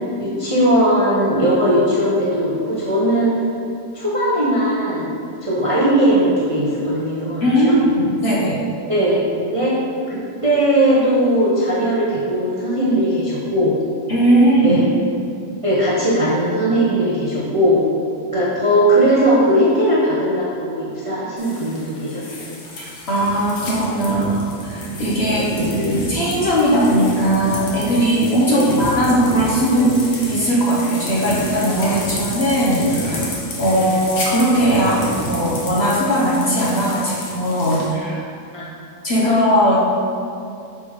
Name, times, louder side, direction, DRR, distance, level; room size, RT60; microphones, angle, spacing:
voice 1, 0.2-3.4 3.9-5.1 5.4-7.8 8.9-9.7 10.1-13.8 14.6-14.9 15.6-17.8 18.3-22.5 25.3-25.8 28.4-28.8 33.7-33.9 38.5-38.6, right 1 dB, 30° right, -7 dB, 0.7 m, -18 dB
voice 2, 7.4-8.6 14.1-14.8 22.8-30.0 30.3-38.3 39.0-39.8, equal, 50° left, -5 dB, 1.0 m, -18 dB
sound 1, 21.4-37.9, left 1 dB, 65° left, 1.6 m, -30 dB
6.9 x 3.5 x 4.9 m, 2.5 s
omnidirectional pair, 1.7 m